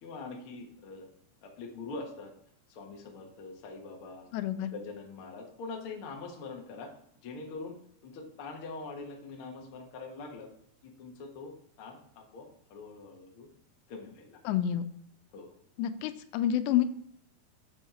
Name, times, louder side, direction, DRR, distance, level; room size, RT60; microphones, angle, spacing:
voice 1, 0.0-1.1 1.4-2.3 2.7-4.2 4.5-6.9 7.2-7.8 8.0-10.5 10.8-13.5 13.9-14.4 15.3-15.5, left 3 dB, 70° left, 1 dB, 1.3 m, -43 dB
voice 2, 4.3-4.7 14.5-14.9 15.8-16.8, left 11 dB, 85° left, 10 dB, 2.8 m, -28 dB
7.4 x 7.2 x 4.3 m, 0.68 s
omnidirectional pair, 4.9 m